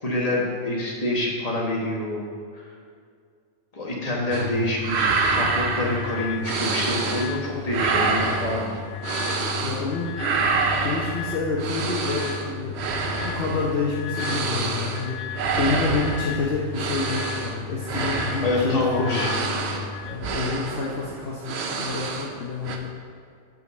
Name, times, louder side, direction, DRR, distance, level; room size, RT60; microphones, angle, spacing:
voice 1, 0.0-2.2 2.5-2.6 3.7-8.8 18.4-19.3, left 1 dB, 30° left, -3 dB, 1.4 m, -26 dB
sound 1, 4.3-20.2, left 8 dB, 90° left, 1.0 m, -35 dB
sound 2, 4.3-4.5 4.8-7.4 7.7-9.9 10.2-22.4 22.6-22.8, right 4 dB, 65° right, 0.9 m, -27 dB
voice 2, 9.6-10.2 10.8-12.8 13.2-19.8 20.1-22.9, left 4 dB, 60° left, -4 dB, 1.0 m, -28 dB
5.6 x 5.3 x 6.6 m, 2.2 s
omnidirectional pair, 1.2 m